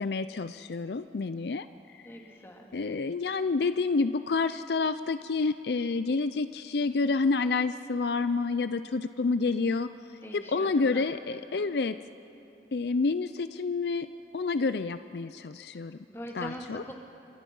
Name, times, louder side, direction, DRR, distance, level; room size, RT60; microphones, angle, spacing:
voice 1, 0.0-1.7 1.9-2.0 2.7-9.9 10.3-12.0 12.7-14.1 14.3-16.0 16.3-16.8, left 4 dB, 65° left, 12 dB, 0.5 m, -28 dB
voice 2, 2.0-2.7 10.2-11.0 11.6-11.7 16.1-16.9, equal, 15° left, 0 dB, 2.6 m, -42 dB
29.5 x 24.5 x 5.5 m, 2.8 s
head